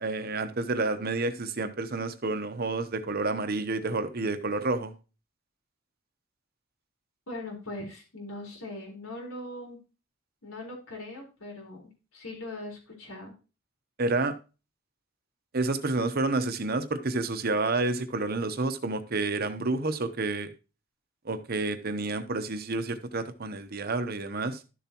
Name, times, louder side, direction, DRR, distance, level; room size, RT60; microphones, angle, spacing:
voice 1, 0.0-4.9 14.0-14.3 15.5-20.5 21.2-24.6, right 3 dB, 45° right, 10 dB, 0.9 m, -29 dB
voice 2, 7.3-9.8 10.4-13.3, left 2 dB, 90° left, 0 dB, 4.2 m, -40 dB
12.0 x 7.0 x 3.0 m, 0.32 s
head